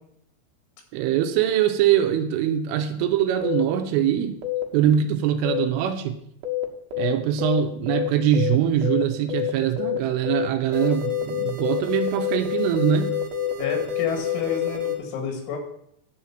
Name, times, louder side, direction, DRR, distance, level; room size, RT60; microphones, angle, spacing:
voice 1, 0.9-4.4 4.7-6.2 7.0-13.1, right 10 dB, 80° right, 7 dB, 3.1 m, -23 dB
sound 1, 3.4-3.6 4.4-4.6 5.4-5.6 6.4-6.6 6.9-7.1 7.4-7.6 7.9-8.1 8.3-8.5 8.8-9.0 9.3-9.5 9.8-10.0 10.2-10.5 10.7-15.0, left 10 dB, 65° right, 2.8 m, -27 dB
voice 2, 13.6-15.6, left 6 dB, 90° left, 2 dB, 4.9 m, -29 dB
12.0 x 4.5 x 7.4 m, 0.72 s
omnidirectional pair, 6.0 m